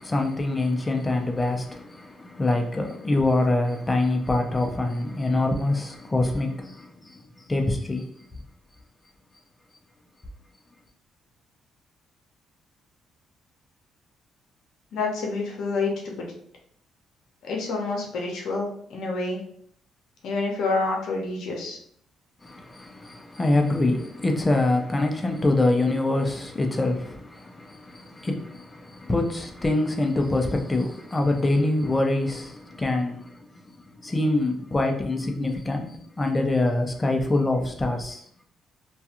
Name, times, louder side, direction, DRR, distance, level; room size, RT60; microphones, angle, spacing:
voice 1, 0.0-7.2 7.5-8.4 22.4-38.2, left 2 dB, 20° left, 0.5 m, -25 dB
voice 2, 14.9-16.3 17.4-19.4 20.2-21.8, left 3 dB, 75° left, 0.7 m, -28 dB
2.3 x 2.3 x 2.8 m
cardioid pair, 90°, 0 cm